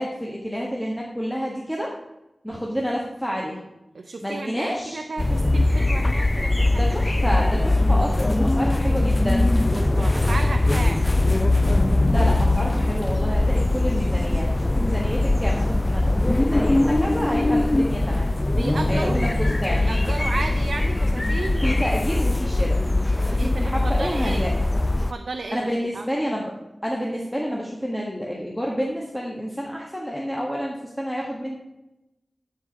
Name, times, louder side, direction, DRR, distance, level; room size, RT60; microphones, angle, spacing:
voice 1, 0.0-1.9 2.4-3.6 4.2-5.0 6.7-9.6 12.1-18.3 18.9-19.8 21.6-22.8 23.2-24.6 25.5-26.5 26.8-31.5, equal, 5° left, -2 dB, 1.5 m, -29 dB
voice 2, 3.9-7.4 9.7-11.0 18.5-21.6 23.3-24.5 25.1-26.1, right 3 dB, 80° right, 5 dB, 0.6 m, -33 dB
sound 1, 5.2-25.1, left 2 dB, 25° left, 0.3 m, -21 dB
11.0 x 4.9 x 6.2 m, 0.96 s
wide cardioid pair, 65°, 0 cm